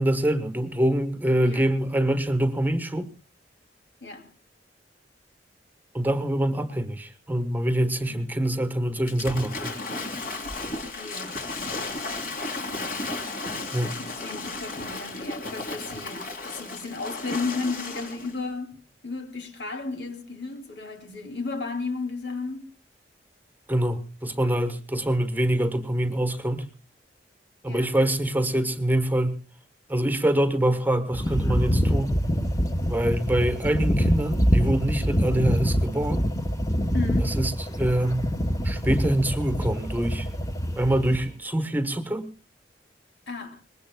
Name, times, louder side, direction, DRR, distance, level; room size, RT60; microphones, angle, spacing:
voice 1, 0.0-3.1 5.9-9.8 13.7-14.0 23.7-26.7 27.6-29.4 29.9-32.1 32.9-36.2 37.2-38.3 38.6-40.3 40.8-42.3, right 1 dB, 10° right, 1.2 m, -25 dB
voice 2, 1.4-1.7 4.0-4.3 8.0-8.4 10.9-11.4 11.8-13.0 14.0-18.8 19.0-22.7 27.7-28.0 36.9-37.4 43.3-43.6, left 4 dB, 80° left, 2.8 m, -34 dB
Waves surf / Splash splatter, 9.1-18.3, left 3 dB, 50° left, 3.3 m, -34 dB
sound 1, 31.1-41.3, equal, 20° left, 1.2 m, -25 dB
24.0 x 20.5 x 2.3 m
head